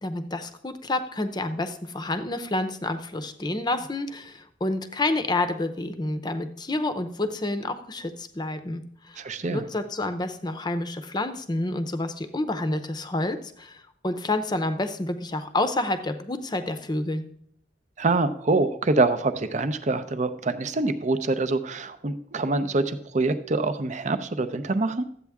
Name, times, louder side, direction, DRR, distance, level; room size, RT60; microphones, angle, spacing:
voice 1, 0.0-9.2 9.5-17.2, left 2 dB, 25° left, 10 dB, 0.7 m, -29 dB
voice 2, 9.2-9.6 18.0-25.0, right 3 dB, 45° right, 11 dB, 0.6 m, -25 dB
12.5 x 8.3 x 3.5 m, 0.64 s
head